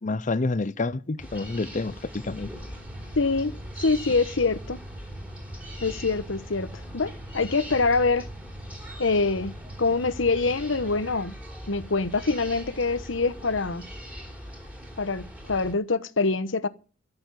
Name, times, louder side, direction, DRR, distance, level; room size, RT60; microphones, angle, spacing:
voice 1, 0.0-2.5, left 3 dB, 40° left, 0.6 m, -28 dB
sound 1, 1.2-15.7, equal, 5° right, 3.7 m, -41 dB
sound 2, 2.7-11.1, right 1 dB, 45° right, 7.3 m, -44 dB
voice 2, 3.2-3.5 3.8-4.8 5.8-6.7 6.9-8.3 9.0-11.3 11.7-13.9 15.0-16.7, left 3 dB, 75° left, 1.1 m, -25 dB
13.5 x 7.0 x 9.7 m
head